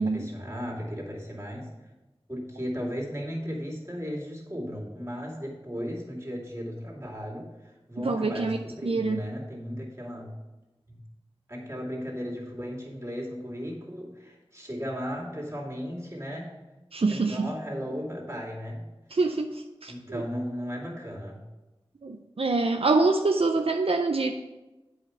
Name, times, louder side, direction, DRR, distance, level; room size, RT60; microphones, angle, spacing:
voice 1, 0.0-1.7 2.3-10.3 10.9-11.0 11.5-16.6 17.1-18.9 19.9-21.4, equal, 25° right, -3 dB, 2.5 m, -36 dB
voice 2, 8.0-8.6 8.8-9.2 16.9-17.5 19.1-20.2 22.0-24.3, right 3 dB, 75° right, 4 dB, 0.5 m, -25 dB
8.4 x 5.1 x 5.7 m, 1.1 s
wide cardioid pair, 50°, 10 cm